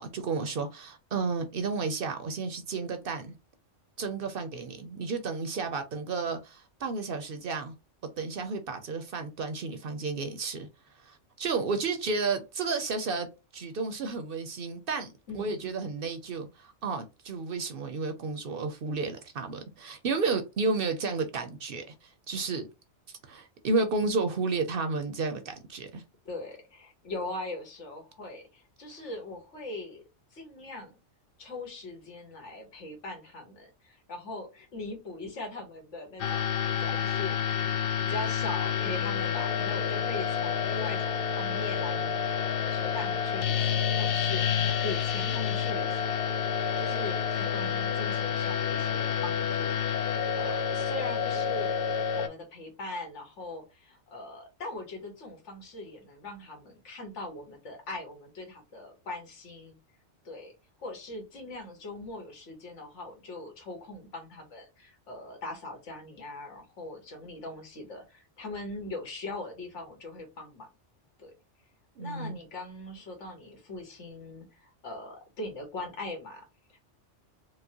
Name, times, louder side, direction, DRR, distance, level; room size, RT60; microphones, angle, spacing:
voice 1, 0.0-3.3 4.0-7.7 8.2-10.7 11.0-22.7 23.2-26.0 47.6-47.7 72.0-72.4, right 4 dB, 60° right, 0.7 m, -32 dB
voice 2, 15.3-15.7 26.2-30.0 30.3-31.0 31.4-46.1 46.8-50.0 50.3-51.9 52.1-59.8 60.2-60.5 60.8-70.7 71.2-71.3 72.0-76.4, left 2 dB, 80° left, 1.6 m, -41 dB
sound 1, 36.2-52.3, left 7 dB, 60° left, 0.7 m, -29 dB
4.7 x 2.1 x 2.7 m
omnidirectional pair, 1.2 m